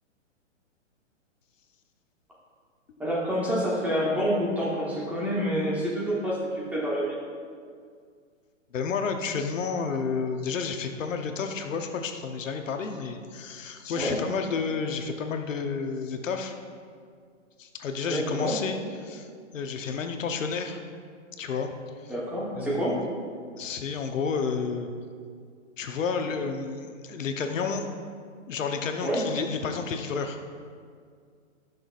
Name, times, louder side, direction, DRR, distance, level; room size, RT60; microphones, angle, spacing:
voice 1, 3.0-6.4 6.7-7.1 13.9-14.1 18.1-18.6 22.1-23.0 29.0-29.2, equal, 5° right, -6 dB, 1.0 m, -27 dB
voice 2, 8.7-16.5 17.6-19.3 19.5-20.8 21.4-22.1 22.5-23.1 23.6-24.9 25.8-27.9 28.5-30.4, left 5 dB, 75° left, 5 dB, 1.0 m, -31 dB
16.0 x 6.2 x 2.5 m, 2.1 s
hypercardioid pair, 155°, 38 cm